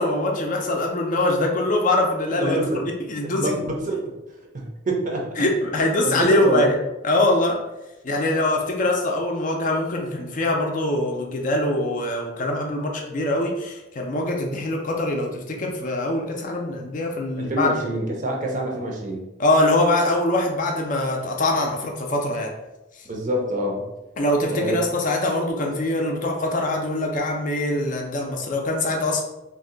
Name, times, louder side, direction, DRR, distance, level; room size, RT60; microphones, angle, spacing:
voice 1, 0.0-3.5 5.4-6.7 7.0-7.6 8.0-17.8 19.4-22.5 24.2-29.2, left 1 dB, 40° left, 1 dB, 0.4 m, -23 dB
voice 2, 2.3-2.8 3.4-4.1 4.5-5.3 6.0-6.7 17.4-19.2 23.0-23.9 24.5-24.8, right 1 dB, 40° right, 0 dB, 0.6 m, -26 dB
2.6 x 2.1 x 3.8 m, 0.98 s
head